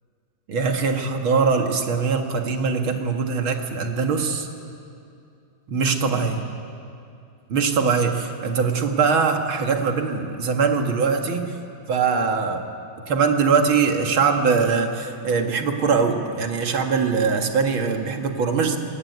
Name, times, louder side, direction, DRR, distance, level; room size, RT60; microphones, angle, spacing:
voice 1, 0.5-4.5 5.7-6.4 7.5-11.6 11.9-12.6 13.1-18.8, right 5 dB, 85° right, 4 dB, 2.7 m, -22 dB
23.0 x 23.0 x 9.5 m, 2.6 s
omnidirectional pair, 2.2 m